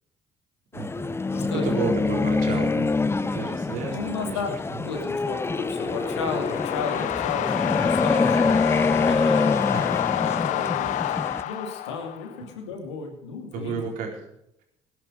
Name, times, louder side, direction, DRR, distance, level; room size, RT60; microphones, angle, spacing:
voice 1, 0.7-1.1 1.4-4.9 9.7-9.9 13.5-14.1, right 5 dB, 70° right, 1 dB, 4.3 m, -32 dB
sound 1, 0.8-11.4, left 3 dB, 15° left, 0.6 m, -25 dB
voice 2, 1.3-1.6 3.9-4.5 4.8-8.5 9.0-11.0 11.4-13.8, left 5 dB, 85° left, 4 dB, 2.7 m, -34 dB
sound 2, 5.3-12.4, left 13 dB, 60° left, 0.6 m, -28 dB
18.5 x 11.0 x 5.1 m, 0.76 s
hypercardioid pair, 55°, 15 cm